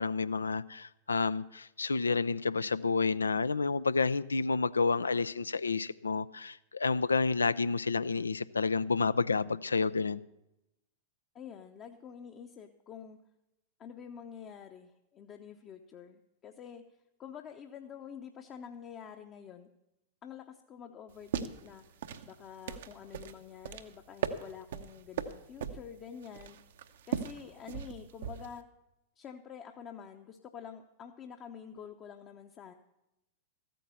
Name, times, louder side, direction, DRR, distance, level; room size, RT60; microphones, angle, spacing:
voice 1, 0.0-10.2, left 4 dB, 80° left, 0.4 m, -30 dB
voice 2, 11.3-13.2 13.8-16.8 17.2-19.7 20.2-21.8 22.2-26.6 27.1-28.7 29.2-32.7, left 8 dB, 30° left, 0.8 m, -48 dB
sound 1, 21.1-28.6, right 8 dB, 65° right, 0.9 m, -39 dB
14.5 x 9.2 x 7.0 m
figure-of-eight pair, 95°, 0 cm